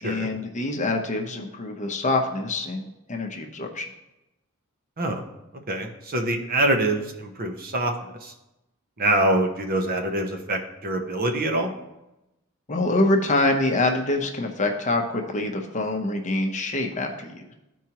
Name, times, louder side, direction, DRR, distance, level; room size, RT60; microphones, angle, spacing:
voice 1, 0.0-3.9 12.7-17.5, left 2 dB, 35° left, 3 dB, 0.8 m, -25 dB
voice 2, 5.7-7.9 8.2-8.3 9.0-11.7, right 1 dB, 45° right, 4 dB, 1.0 m, -25 dB
13.5 x 4.6 x 2.9 m, 0.92 s
head